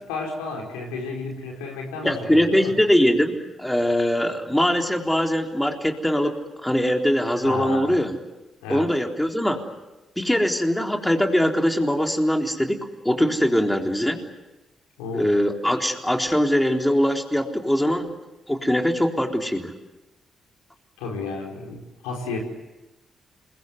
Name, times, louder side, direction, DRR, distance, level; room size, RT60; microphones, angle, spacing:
voice 1, 0.0-2.7 7.4-7.9 8.6-8.9 15.0-15.3 21.0-22.4, left 4 dB, 85° left, 0 dB, 5.1 m, -32 dB
voice 2, 2.0-6.3 6.6-8.2 8.7-9.6 10.2-12.8 13.0-14.2 15.1-18.1 18.5-19.7, equal, 10° left, 3 dB, 3.9 m, -22 dB
27.5 x 22.0 x 8.1 m, 1.0 s
hypercardioid pair, 45°, 0 cm